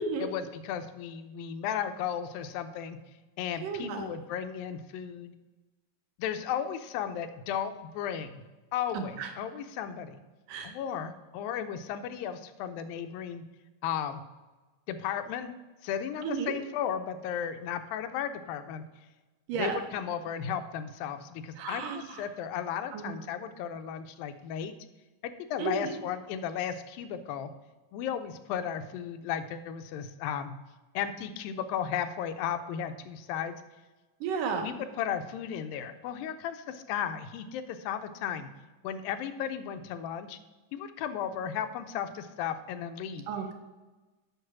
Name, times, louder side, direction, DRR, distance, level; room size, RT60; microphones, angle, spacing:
voice 1, 0.2-3.0 3.4-5.3 6.2-8.4 8.7-10.2 10.6-13.4 13.8-14.2 14.9-15.5 15.8-18.8 19.6-24.7 25.2-27.5 27.9-30.6 31.0-33.6 34.6-38.5 38.8-40.4 40.7-43.3, left 8 dB, 85° left, 10 dB, 2.4 m, -35 dB
voice 2, 3.6-4.1 8.9-9.3 10.5-10.7 16.2-16.5 19.5-19.8 21.6-22.3 22.9-23.1 25.6-25.9 34.2-34.7 43.3-43.5, right 5 dB, 75° right, 4 dB, 2.4 m, -33 dB
8.0 x 5.9 x 5.9 m, 1.2 s
omnidirectional pair, 4.1 m